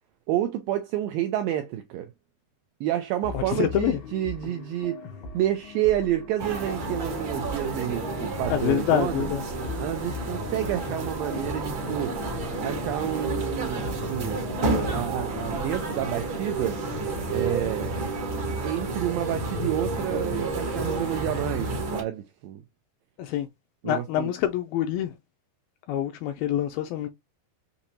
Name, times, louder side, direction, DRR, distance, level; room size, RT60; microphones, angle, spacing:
voice 1, 0.3-2.1 2.8-5.0 5.3-9.3 9.8-12.2 12.6-14.4 14.9-17.0 17.3-17.9 18.6-22.6 23.8-24.3, right 12 dB, 85° right, 2.0 m, -29 dB
sound 1, 3.2-16.0, left 4 dB, 65° left, 1.3 m, -40 dB
voice 2, 3.3-4.0 8.5-9.4 23.2-23.5 23.8-25.1 25.9-27.1, left 11 dB, 80° left, 2.1 m, -26 dB
sound 2, 6.4-22.0, right 2 dB, 65° right, 1.2 m, -30 dB
6.8 x 2.8 x 2.7 m
omnidirectional pair, 4.6 m